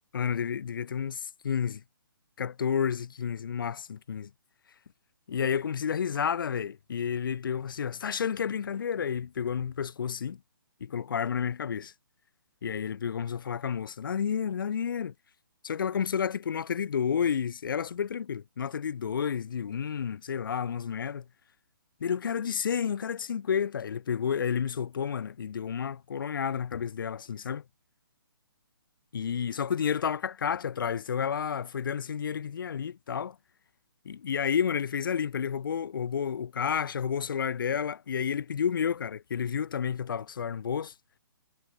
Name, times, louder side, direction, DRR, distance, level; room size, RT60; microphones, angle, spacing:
voice 1, 0.1-1.8 2.4-4.3 5.3-10.4 10.8-11.9 12.6-15.1 15.6-21.2 22.0-27.6 29.1-33.4 34.1-40.9, left 7 dB, 65° left, 0.5 m, -31 dB
figure-of-eight pair, 135°, 12 cm